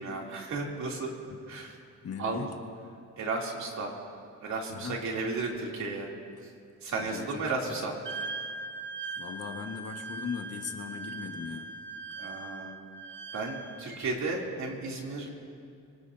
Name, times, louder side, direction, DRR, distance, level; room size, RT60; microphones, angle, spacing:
voice 1, 0.0-1.1 1.5-1.8 2.2-2.5 3.2-3.9 4.4-6.1 6.8-8.0 12.2-12.7 13.3-15.3, right 3 dB, 65° right, -2 dB, 3.1 m, -34 dB
voice 2, 2.0-2.6 4.7-5.0 7.0-7.3 7.6-7.7 9.2-11.7, left 6 dB, 55° left, 4 dB, 1.6 m, -38 dB
Wind instrument woodwind instrument, 8.0-14.0, right 3 dB, 40° right, 0.9 m, -40 dB
27.0 x 19.0 x 2.8 m, 2.3 s
cardioid pair, 90°, 30 cm